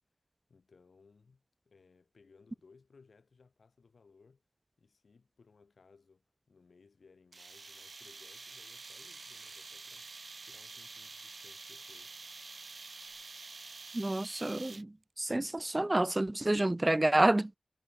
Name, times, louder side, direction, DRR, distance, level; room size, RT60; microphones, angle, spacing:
voice 1, 0.5-4.4 4.8-12.2, left 4 dB, 80° left, 5.9 m, -63 dB
sound 1, 7.3-15.0, right 3 dB, 65° right, 1.2 m, -48 dB
voice 2, 13.9-17.6, right 1 dB, 30° right, 0.4 m, -29 dB
cardioid pair, 45°, 0 cm